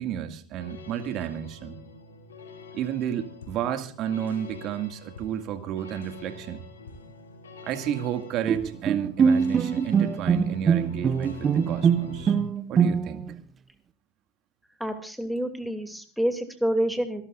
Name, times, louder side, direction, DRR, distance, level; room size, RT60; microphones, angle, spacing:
voice 1, 0.0-1.8 2.7-6.6 7.6-12.4 12.7-13.3, right 10 dB, 45° right, 7 dB, 2.2 m, -32 dB
sound 1, 0.5-12.4, left 2 dB, 80° left, 3.3 m, -45 dB
Bowed string instrument, 8.5-13.3, right 6 dB, 30° right, 0.7 m, -23 dB
voice 2, 14.8-17.2, equal, ahead, 6 dB, 2.8 m, -28 dB
26.5 x 13.0 x 2.6 m, 0.42 s
hypercardioid pair, 85°, 0 cm